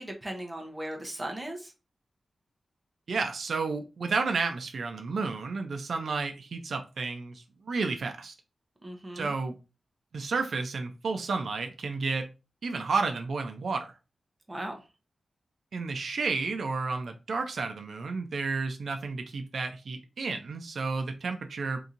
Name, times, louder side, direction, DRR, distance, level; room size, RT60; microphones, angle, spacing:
voice 1, 0.0-1.7 8.8-9.3 14.5-14.7, right 1 dB, 15° right, 0.8 m, -37 dB
voice 2, 3.1-8.3 9.2-9.6 10.1-12.3 12.6-13.9 15.7-21.8, right 4 dB, 70° right, 0.5 m, -31 dB
2.9 x 2.6 x 3.8 m
wide cardioid pair, 150°, 0 cm